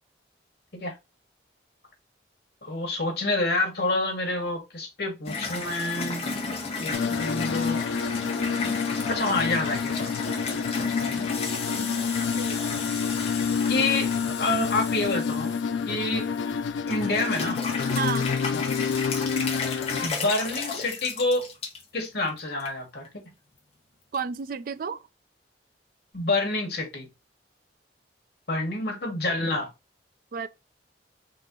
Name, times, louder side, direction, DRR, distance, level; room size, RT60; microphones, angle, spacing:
voice 1, 2.6-6.4 6.8-7.8 9.1-10.1 10.5-11.3 13.7-15.6 15.8-16.3 16.9-17.6 18.5-18.6 20.0-21.5 21.9-23.1 26.1-27.1 28.5-29.7, left 2 dB, 55° left, 1.4 m, -28 dB
sound 1, 5.3-16.5 16.9-21.8 22.3-22.7 23.1-23.2 24.1-24.2, left 4 dB, 30° left, 0.9 m, -34 dB
sound 2, 6.9-20.1, left 6 dB, 85° left, 0.4 m, -28 dB
voice 2, 18.0-18.3 24.1-25.0 30.3-30.5, right 6 dB, 50° right, 0.3 m, -31 dB
3.7 x 2.8 x 3.7 m
head